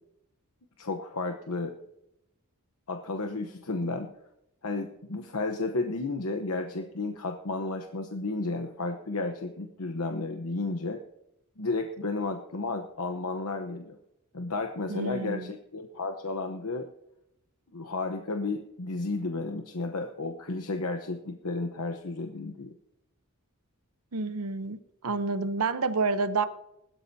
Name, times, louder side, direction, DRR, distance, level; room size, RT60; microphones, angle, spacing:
voice 1, 0.8-1.7 2.9-4.1 4.6-11.0 11.6-14.0 14.3-16.9 17.7-22.8, left 3 dB, 80° left, 5 dB, 1.0 m, -32 dB
voice 2, 14.9-15.5 24.1-24.8 25.0-26.5, right 3 dB, 80° right, 12 dB, 0.9 m, -28 dB
20.5 x 13.0 x 2.8 m, 0.84 s
head